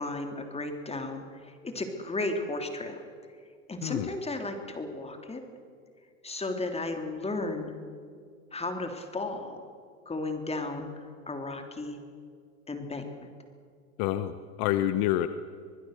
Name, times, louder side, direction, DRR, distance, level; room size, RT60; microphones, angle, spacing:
voice 1, 0.0-3.0 3.7-5.4 6.2-7.7 8.5-9.6 10.0-10.9 11.3-12.0 12.7-13.1, left 2 dB, 15° left, 5 dB, 3.3 m, -34 dB
voice 2, 14.0-15.3, left 13 dB, 55° left, 11 dB, 1.2 m, -28 dB
25.0 x 20.0 x 6.6 m, 2.2 s
hypercardioid pair, 100°, 41 cm